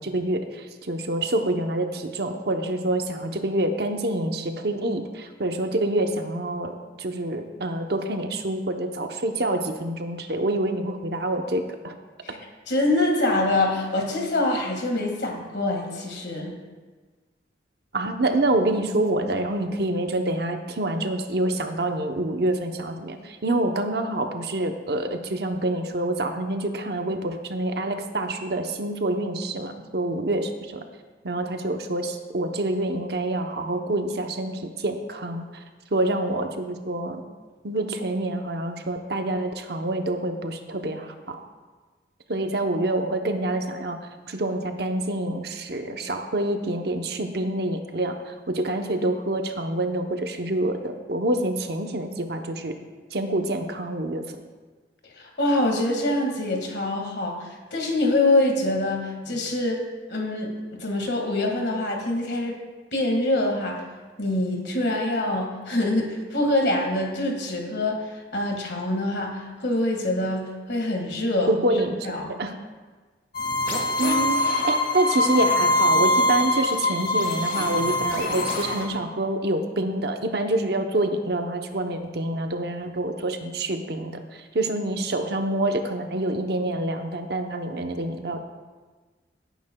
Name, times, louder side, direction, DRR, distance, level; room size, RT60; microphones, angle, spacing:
voice 1, 0.0-11.9 17.9-30.8 31.2-35.6 35.9-37.2 37.6-41.4 42.3-44.0 44.3-52.8 53.1-54.2 71.5-72.0 72.4-72.5 74.0-88.4, right 1 dB, 60° right, 5 dB, 0.8 m, -27 dB
voice 2, 12.7-16.6 55.2-59.8 60.1-62.6 62.9-63.8 64.2-71.5 72.0-72.3, left 2 dB, 65° left, 1 dB, 1.9 m, -25 dB
sound 1, 73.3-78.9, left 1 dB, 50° left, 1.5 m, -23 dB
17.5 x 9.2 x 2.3 m, 1.4 s
head